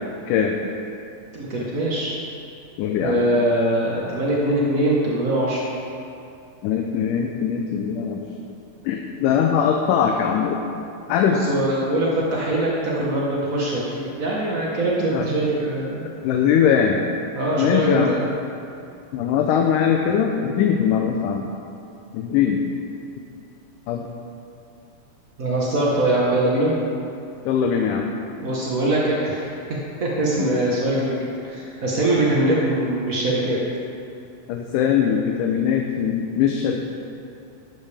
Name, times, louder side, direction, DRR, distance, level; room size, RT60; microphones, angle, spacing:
voice 1, 1.3-2.1 3.0-5.6 11.2-16.1 17.3-18.2 25.4-26.7 28.4-29.5 30.0-31.2 31.4-33.6, right 1 dB, 60° right, -5 dB, 0.8 m, -22 dB
voice 2, 2.8-3.2 6.6-8.3 8.8-10.6 11.1-11.4 15.1-15.3 16.0-17.0 17.6-18.1 19.1-21.5 22.1-22.6 23.9-24.1 27.5-28.1 32.1-32.2 34.5-36.8, left 8 dB, 80° left, 2 dB, 2.3 m, -21 dB
13.5 x 12.5 x 3.5 m, 2.6 s
omnidirectional pair, 3.7 m